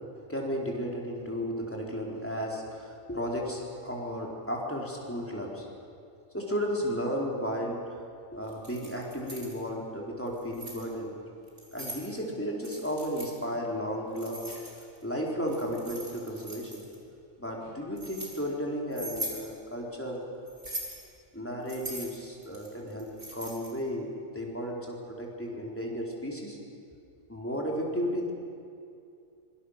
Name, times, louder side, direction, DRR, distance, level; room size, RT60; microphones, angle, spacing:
voice 1, 0.3-5.7 6.3-8.0 8.3-11.2 11.7-14.5 15.0-16.8 17.4-20.2 21.3-26.6 27.3-28.3, equal, 10° left, -2 dB, 4.0 m, -34 dB
Keys jangling, 8.5-9.5 10.3-10.8 11.5-12.0 12.6-13.3 14.2-15.0 15.5-16.9 17.6-18.3 18.9-19.4 20.5-21.0 21.7-23.8, right 1 dB, 50° right, 4.6 m, -41 dB
25.5 x 24.0 x 6.6 m, 2.5 s
omnidirectional pair, 1.2 m